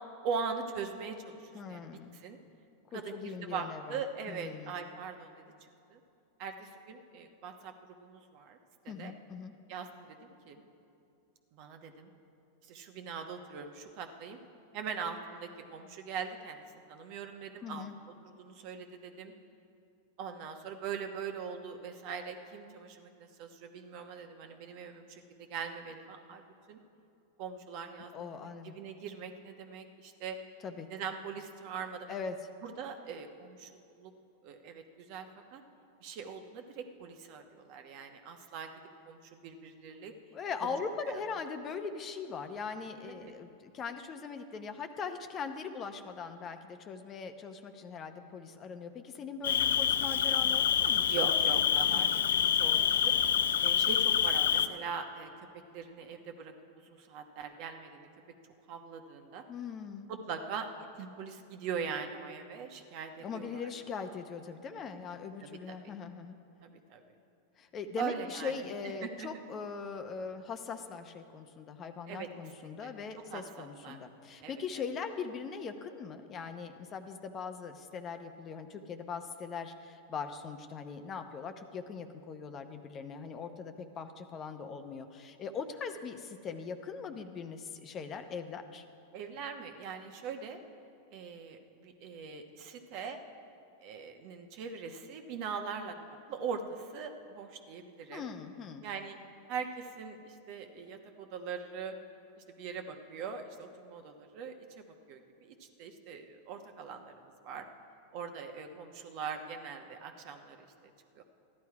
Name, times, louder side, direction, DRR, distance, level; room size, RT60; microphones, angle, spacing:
voice 1, 0.2-2.4 2.9-6.0 6.4-8.6 9.0-9.1 9.7-10.6 11.5-12.1 12.6-14.4 14.7-17.9 18.2-19.3 20.2-26.8 27.4-30.4 30.9-32.1 32.6-34.1 34.4-35.6 36.0-38.7 39.1-40.1 40.6-40.8 41.1-41.2 43.0-43.3 51.1-53.1 53.6-56.5 56.8-58.1 58.7-59.4 60.1-60.7 60.9-63.6 65.4-65.9 66.6-67.1 68.0-68.5 69.0-69.3 72.1-72.3 72.6-72.9 73.3-74.0 74.4-74.5 89.1-90.6 91.1-93.2 93.8-96.0 96.3-98.3 98.8-99.2 99.5-102.0 102.4-107.7 108.1-110.9 111.2-111.3, right 6 dB, 55° right, 5 dB, 1.1 m, -41 dB
voice 2, 1.5-2.1 2.9-4.0 4.3-4.8 8.9-9.5 17.6-18.0 28.1-28.8 30.6-30.9 32.1-32.4 40.3-51.2 51.9-52.2 59.5-60.1 63.2-66.4 67.6-88.8 98.1-98.8, left 5 dB, 30° left, 8 dB, 0.8 m, -41 dB
Cricket, 49.4-54.7, left 9 dB, 80° left, 0.4 m, -27 dB
13.5 x 11.0 x 4.8 m, 2.7 s
hypercardioid pair, 110°, 0 cm